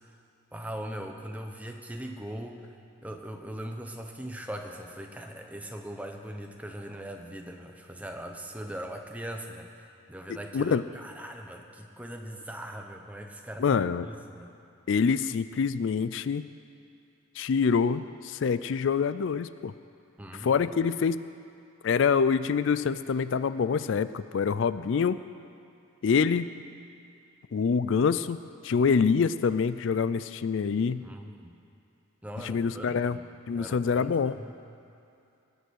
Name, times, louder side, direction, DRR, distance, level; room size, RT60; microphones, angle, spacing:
voice 1, 0.5-2.7 3.0-14.5 20.2-20.7 31.0-31.6 32.2-33.3 33.5-34.6, right 1 dB, 5° right, 3 dB, 0.9 m, -40 dB
voice 2, 13.6-14.1 14.9-16.5 17.4-19.7 20.4-21.2 21.8-25.2 26.0-26.5 27.5-28.4 28.6-31.0 32.4-33.2 33.5-34.3, left 6 dB, 65° left, 15 dB, 0.4 m, -25 dB
19.5 x 8.1 x 6.3 m, 2.6 s
head